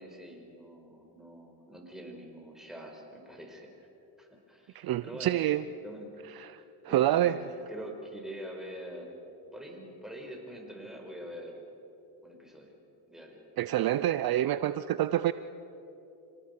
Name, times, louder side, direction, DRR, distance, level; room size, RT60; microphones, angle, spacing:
voice 1, 0.0-3.9 4.2-5.3 5.8-6.1 6.9-9.1 9.5-11.6 12.2-12.7 13.1-13.4, equal, ahead, 1 dB, 4.9 m, -45 dB
voice 2, 4.7-5.6 6.3-7.5 13.6-15.3, right 13 dB, 50° right, 14 dB, 0.6 m, -28 dB
26.5 x 18.5 x 6.7 m, 3.0 s
cardioid pair, 95°, 45 cm